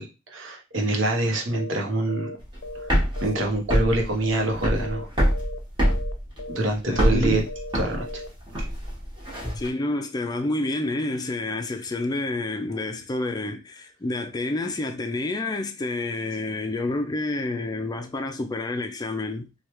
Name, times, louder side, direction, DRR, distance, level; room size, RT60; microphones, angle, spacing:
voice 1, 0.0-2.4 2.7-2.9 3.2-5.1 6.5-7.4 7.7-8.2, right 2 dB, 70° right, 0.9 m, -25 dB
sound 1, 1.5-1.8 2.1-2.4 2.6-4.0 4.2-4.5 4.8-5.1 5.3-5.6 5.8-6.1 6.4-6.7 6.9-7.2 7.5-7.7 8.0-8.3, left 2 dB, 75° left, 0.5 m, -37 dB
sound 2, 2.4-9.7, equal, 25° right, 1.1 m, -25 dB
voice 2, 6.9-7.5 9.6-19.5, left 2 dB, 20° left, 0.4 m, -29 dB
3.2 x 2.3 x 3.0 m
head